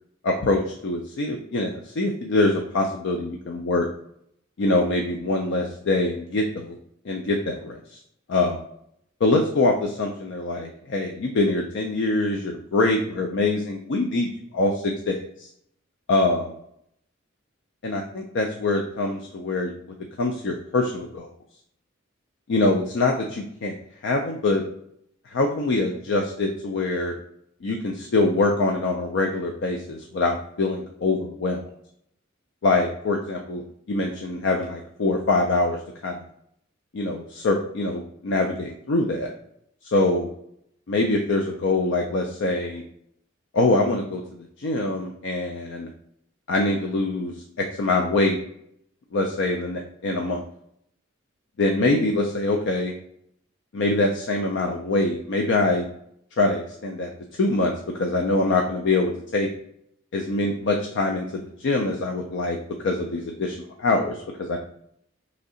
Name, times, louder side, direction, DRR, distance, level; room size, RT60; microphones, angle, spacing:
voice 1, 0.2-3.9 4.6-6.8 7.1-8.0 8.3-8.6 9.2-15.5 16.1-16.5 17.8-21.3 22.5-23.7 24.0-24.7 25.3-27.1 27.6-31.6 32.6-33.6 33.9-35.8 36.0-36.2 36.9-39.3 39.8-40.3 40.9-42.8 43.5-44.2 44.6-45.9 46.5-48.4 49.1-50.4 51.6-52.9 53.7-55.8 56.4-57.7 58.0-59.5 60.1-62.6 62.8-64.6, left 2 dB, 65° left, 2 dB, 0.4 m, -24 dB
3.2 x 2.7 x 3.7 m, 0.72 s
head